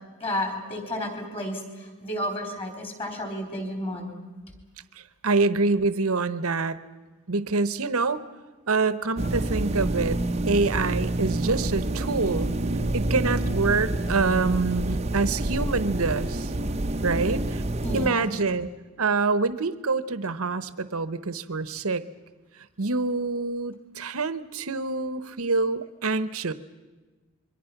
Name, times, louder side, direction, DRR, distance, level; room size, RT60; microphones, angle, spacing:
voice 1, 0.2-4.1 17.8-18.3, left 1 dB, 25° left, 4 dB, 4.3 m, -32 dB
voice 2, 5.0-6.8 7.3-8.2 8.7-10.2 10.5-12.5 12.9-16.5 17.0-17.6 17.9-18.7 19.0-22.0 22.8-26.5, right 3 dB, 75° right, 14 dB, 1.0 m, -26 dB
sound 1, 9.2-18.1, right 1 dB, 30° right, 0.7 m, -28 dB
27.0 x 23.5 x 6.0 m, 1.3 s
head